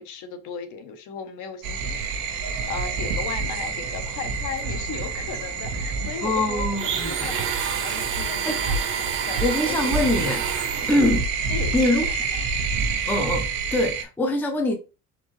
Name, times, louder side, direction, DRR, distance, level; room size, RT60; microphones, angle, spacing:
voice 1, 0.0-6.7 7.0-7.5 7.8-10.2 11.5-11.9, left 6 dB, 60° left, 0.9 m, -36 dB
sound 1, 1.6-14.0, right 4 dB, 70° right, 1.2 m, -28 dB
voice 2, 6.2-7.3 8.5-8.6 9.4-10.4 10.9-11.2 11.7-12.1 13.1-14.8, left 1 dB, 5° left, 0.5 m, -23 dB
Domestic sounds home sounds, 6.8-11.2, right 8 dB, 35° right, 0.7 m, -29 dB
4.3 x 4.0 x 3.1 m
cardioid pair, 175°, 34 cm